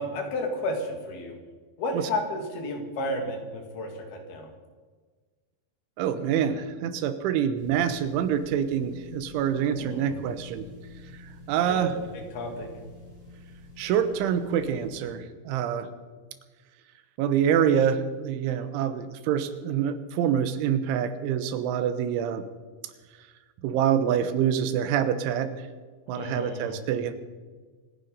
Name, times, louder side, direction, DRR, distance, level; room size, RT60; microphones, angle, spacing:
voice 1, 0.0-1.4 1.8-4.5 9.8-10.2 11.6-11.9 12.3-12.7 26.1-26.8, left 1 dB, 60° left, 4 dB, 3.9 m, -32 dB
voice 2, 6.0-10.7 11.5-11.9 13.8-15.9 17.2-22.4 23.6-25.5 26.1-27.1, right 9 dB, 85° right, 11 dB, 3.5 m, -26 dB
sound 1, 7.6-15.1, left 3 dB, 20° right, 4.5 m, -47 dB
26.0 x 10.0 x 5.4 m, 1.4 s
omnidirectional pair, 5.3 m